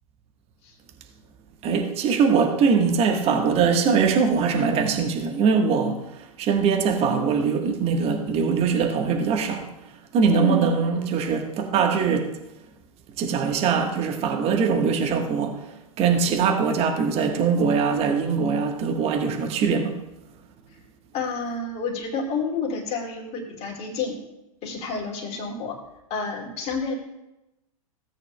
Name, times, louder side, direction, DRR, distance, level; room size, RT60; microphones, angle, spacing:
voice 1, 1.6-9.7 10.1-12.3 13.2-15.6 16.0-20.0, right 5 dB, 30° right, 1.3 m, -22 dB
voice 2, 10.3-10.7 21.1-24.2 24.6-25.8 26.1-26.9, left 4 dB, 35° left, 2.3 m, -29 dB
16.5 x 9.0 x 2.2 m
hypercardioid pair, 105°, 19 cm